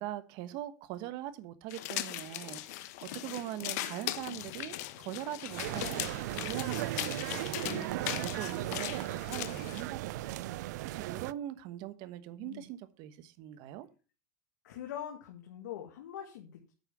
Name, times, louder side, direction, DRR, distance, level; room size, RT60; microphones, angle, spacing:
voice 1, 0.0-10.4 10.8-13.9, right 13 dB, 55° right, 1.3 m, -42 dB
sound 1, 1.7-9.8, left 15 dB, 70° left, 1.0 m, -39 dB
sound 2, 5.5-11.3, right 16 dB, 75° right, 0.5 m, -37 dB
voice 2, 14.6-16.7, left 10 dB, 90° left, 1.9 m, -43 dB
9.0 x 5.7 x 7.4 m
supercardioid pair, 140°, 9 cm